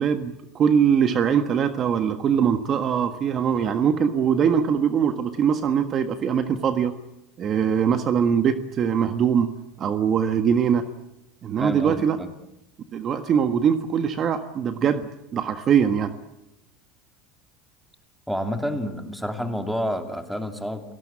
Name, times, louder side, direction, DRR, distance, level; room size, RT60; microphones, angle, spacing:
voice 1, 0.0-6.9 7.4-9.5 9.8-10.8 11.4-12.2 12.9-16.1, right 7 dB, 35° right, 8 dB, 1.5 m, -22 dB
voice 2, 11.6-12.3 18.3-20.8, equal, ahead, 6 dB, 2.6 m, -29 dB
29.5 x 18.5 x 8.7 m, 0.88 s
supercardioid pair, 135°, 0 cm